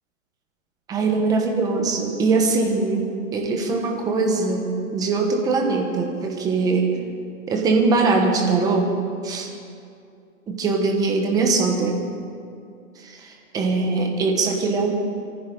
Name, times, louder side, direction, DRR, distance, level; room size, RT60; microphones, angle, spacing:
voice 1, 0.9-6.9 7.5-8.9 9.2-9.5 10.5-12.0 13.0-14.9, right 3 dB, 10° right, 2 dB, 1.0 m, -22 dB
23.5 x 14.5 x 3.8 m, 2.5 s
hypercardioid pair, 160°, 41 cm